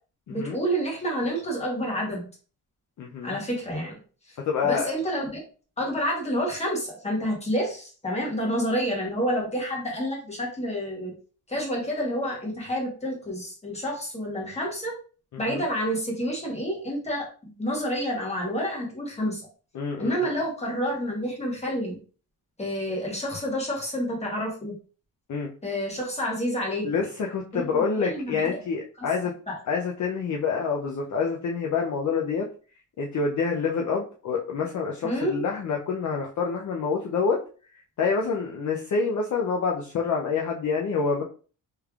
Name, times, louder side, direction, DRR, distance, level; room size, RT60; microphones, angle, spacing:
voice 1, 0.3-2.3 3.2-3.9 4.3-4.4 4.6-5.4 5.8-11.1 11.5-14.9 15.4-17.3 17.6-19.4 20.0-22.0 22.6-24.7 25.6-26.8 27.5-28.6 29.5-29.6 35.0-35.4, equal, 20° left, -2 dB, 1.4 m, -29 dB
voice 2, 3.0-3.4 4.4-4.9 15.3-15.6 19.7-20.3 25.3-25.5 26.8-29.3 29.7-32.5 33.0-37.4 38.0-41.2, left 5 dB, 55° left, 0 dB, 0.6 m, -27 dB
3.3 x 3.3 x 2.3 m, 0.39 s
cardioid pair, 125°, 36 cm